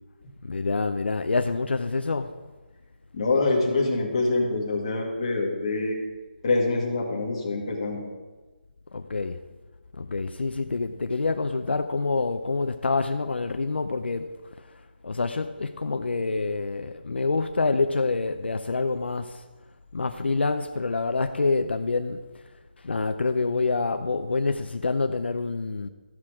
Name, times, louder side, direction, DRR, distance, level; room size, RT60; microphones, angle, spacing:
voice 1, 0.4-2.4 8.9-9.4 9.9-19.4 19.9-22.2 22.8-25.9, left 3 dB, 80° left, 0.6 m, -27 dB
voice 2, 3.1-6.0 6.4-8.1, left 3 dB, 30° left, 1.7 m, -25 dB
14.0 x 6.0 x 4.9 m
hypercardioid pair, 175°, 6 cm